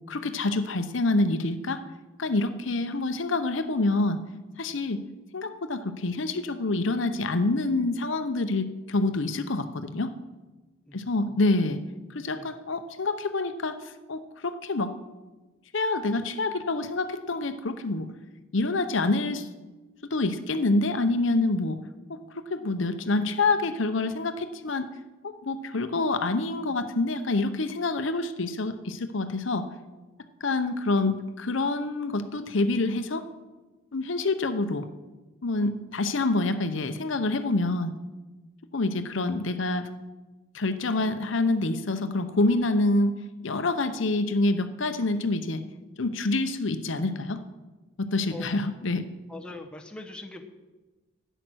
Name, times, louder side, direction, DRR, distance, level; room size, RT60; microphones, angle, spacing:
voice 1, 0.1-1.8 2.2-4.2 4.6-5.0 5.3-10.1 10.9-11.8 12.1-14.9 15.7-18.1 18.5-19.5 20.1-21.8 22.1-24.9 25.2-29.7 30.4-33.3 33.9-34.9 35.4-37.9 38.7-39.9 40.5-43.1 43.4-45.6 46.0-47.4 48.1-49.0, left 2 dB, 70° left, 9 dB, 0.8 m, -27 dB
voice 2, 10.9-11.4 12.3-12.5 48.3-48.6 49.3-50.4, left 2 dB, 5° left, 1 dB, 1.0 m, -42 dB
12.5 x 9.1 x 6.2 m, 1.2 s
head